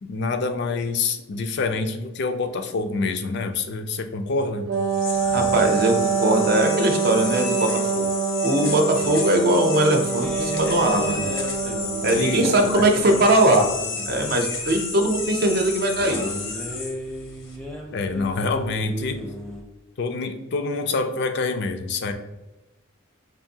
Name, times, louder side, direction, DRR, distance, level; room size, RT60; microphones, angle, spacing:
voice 1, 0.0-4.6 12.1-12.8 17.9-19.2 20.0-22.1, left 3 dB, 60° left, 7 dB, 0.4 m, -26 dB
sound 1, 4.7-17.6, left 4 dB, 85° left, 0.8 m, -32 dB
Wind instrument woodwind instrument, 4.7-12.8, right 5 dB, 90° right, 0.7 m, -25 dB
voice 2, 5.3-8.1 8.4-11.2 12.0-13.7 14.1-16.2, right 1 dB, 50° right, 4 dB, 0.6 m, -20 dB
sound 2, 10.2-19.6, equal, 5° left, 0.5 m, -35 dB
4.7 x 2.5 x 2.7 m, 1.0 s
head